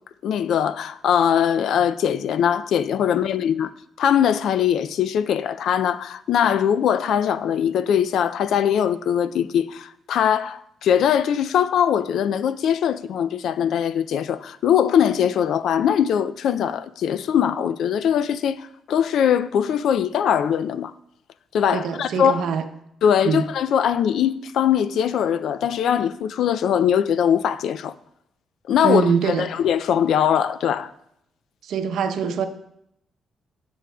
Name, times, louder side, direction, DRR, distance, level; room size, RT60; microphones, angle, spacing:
voice 1, 0.2-3.7 4.0-20.9 21.5-22.4 23.0-27.9 28.7-30.9, left 9 dB, 70° left, 0.3 m, -21 dB
voice 2, 21.7-22.6 23.2-23.4 28.8-29.5 31.6-32.5, right 7 dB, 75° right, 0.6 m, -23 dB
13.0 x 6.2 x 2.3 m
cardioid pair, 140°, 0 cm